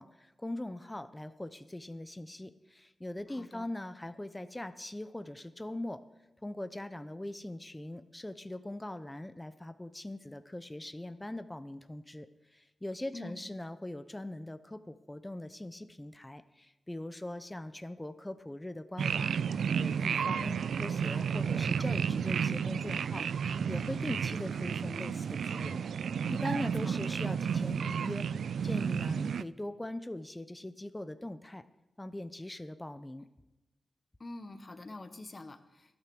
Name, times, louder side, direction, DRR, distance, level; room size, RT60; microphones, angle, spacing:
voice 1, 0.0-6.0 6.4-31.6 32.0-33.3, left 1 dB, 15° left, 11 dB, 0.8 m, -41 dB
voice 2, 3.3-3.7 13.1-13.4 26.8-26.9 34.2-36.0, left 2 dB, 40° left, 9 dB, 1.2 m, -46 dB
sound 1, 19.0-29.4, right 7 dB, 80° right, 0.3 m, -32 dB
13.0 x 9.0 x 6.3 m, 0.98 s
cardioid pair, 45°, 0 cm